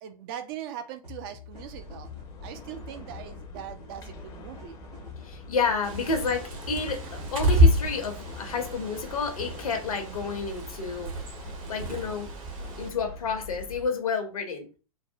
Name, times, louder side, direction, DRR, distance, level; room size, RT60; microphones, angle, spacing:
voice 1, 0.0-2.1 2.4-4.8 7.2-7.4, right 10 dB, 35° right, 9 dB, 0.4 m, -41 dB
sound 1, 1.0-9.5, left 5 dB, 85° right, 1.4 m, -47 dB
sound 2, 1.5-13.9, left 2 dB, 20° left, 0.5 m, -45 dB
voice 2, 5.2-11.1 11.7-12.3 12.8-14.6, left 4 dB, 65° left, 5 dB, 0.8 m, -30 dB
Bird, 5.8-12.9, equal, 60° right, 1.0 m, -28 dB
3.3 x 2.1 x 2.6 m, 0.33 s
figure-of-eight pair, 100°, 19 cm